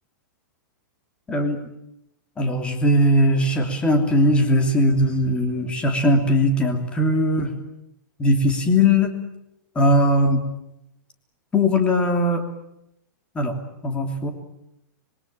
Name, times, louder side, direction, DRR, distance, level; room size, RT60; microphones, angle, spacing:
voice 1, 1.3-1.6 2.4-7.5 8.2-9.1 9.7-10.4 11.5-12.4 13.3-13.5 13.8-14.3, left 1 dB, 10° left, 5 dB, 3.0 m, -19 dB
26.0 x 23.0 x 8.8 m, 0.83 s
supercardioid pair, 170°, 11 cm